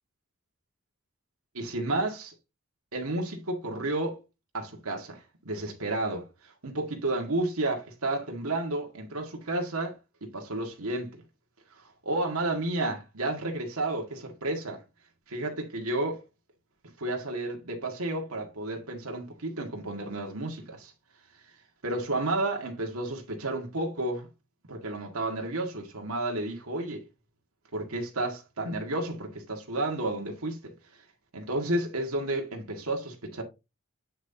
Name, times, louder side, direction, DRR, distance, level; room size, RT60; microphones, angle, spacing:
voice 1, 1.5-2.3 2.9-4.2 4.5-11.2 12.0-14.8 15.3-16.2 17.0-20.9 21.8-24.3 24.7-27.0 27.7-30.7 31.3-33.4, right 2 dB, 80° right, 2.0 m, -31 dB
8.8 x 6.3 x 2.8 m
head